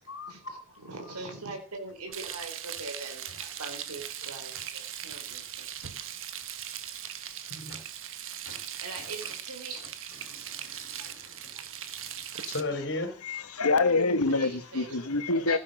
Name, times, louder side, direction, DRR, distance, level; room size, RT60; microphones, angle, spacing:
voice 1, 0.1-0.9 7.6-7.8 8.5-8.6 10.3-13.1, left 2 dB, 55° left, 3.7 m, -38 dB
voice 2, 0.8-5.7 8.8-9.9 11.0-11.6 14.3-15.6, right 3 dB, 80° right, 4.2 m, -42 dB
Frying (food), 2.1-12.6, right 10 dB, 65° right, 1.5 m, -39 dB
voice 3, 13.2-15.6, left 3 dB, 80° left, 1.8 m, -26 dB
16.5 x 9.0 x 6.7 m
head